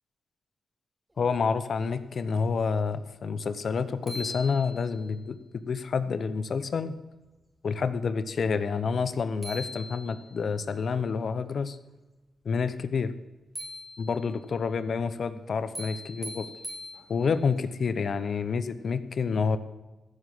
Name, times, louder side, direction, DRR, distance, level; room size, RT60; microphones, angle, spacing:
voice 1, 1.2-5.4 5.6-6.9 7.6-11.8 12.4-13.2 14.0-16.5 17.1-19.6, left 5 dB, 60° left, 12 dB, 0.8 m, -28 dB
sound 1, 3.6-3.7 4.1-5.2 9.1-9.2 9.4-10.5 13.6-14.5 15.7-17.5, left 1 dB, 15° right, 3.7 m, -41 dB
15.0 x 6.3 x 7.6 m, 1.1 s
cardioid pair, 60°, 0 cm